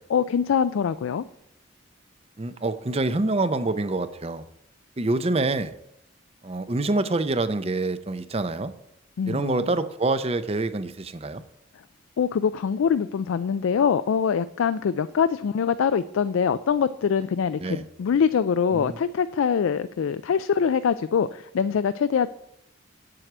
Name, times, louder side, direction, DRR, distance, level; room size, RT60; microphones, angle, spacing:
voice 1, 0.1-1.3 9.2-9.6 12.2-22.3, left 7 dB, 90° left, 13 dB, 0.4 m, -24 dB
voice 2, 2.4-4.4 5.0-5.8 6.4-8.7 9.3-11.4 17.6-17.9 18.7-19.0, right 2 dB, 30° right, 12 dB, 0.6 m, -26 dB
8.0 x 7.6 x 6.0 m, 0.78 s
head